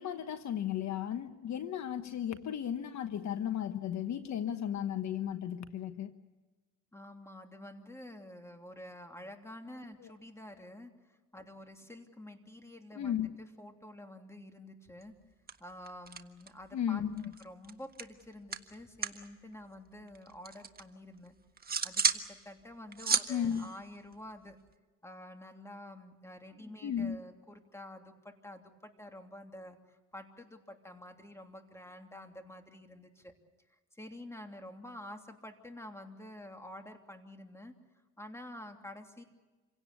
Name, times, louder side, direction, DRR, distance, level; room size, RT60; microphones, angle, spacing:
voice 1, 0.0-6.1 10.0-10.1 13.0-13.3 16.7-17.3 23.3-23.7 26.8-27.2, left 9 dB, 65° left, 1.2 m, -35 dB
voice 2, 6.9-13.1 13.4-15.1 15.6-17.0 17.4-21.3 21.8-24.6 25.0-33.3 33.9-37.7 38.2-39.2, left 1 dB, 10° left, 3.0 m, -49 dB
sound 1, 15.0-15.2 15.5-16.7 17.0-19.3 19.5-20.8 21.3-22.3 22.6-24.7, right 5 dB, 30° right, 1.5 m, -35 dB
27.5 x 17.5 x 8.3 m
cardioid pair, 90°, 30 cm